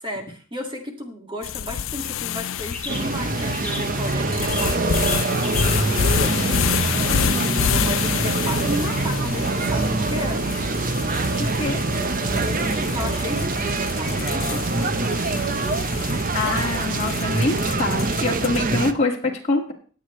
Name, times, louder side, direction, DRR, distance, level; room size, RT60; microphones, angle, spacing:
voice 1, 0.0-6.6 7.1-10.5 12.4-15.1, equal, 25° right, 3 dB, 2.0 m, -33 dB
sound 1, 1.4-18.8, left 9 dB, 65° left, 0.4 m, -29 dB
sound 2, 2.3-18.2, left 2 dB, 10° left, 2.5 m, -42 dB
sound 3, 2.9-18.9, right 3 dB, 40° right, 0.8 m, -24 dB
voice 2, 11.4-11.8 16.3-19.7, left 2 dB, 30° left, -2 dB, 1.9 m, -25 dB
20.0 x 8.1 x 3.2 m, 0.40 s
head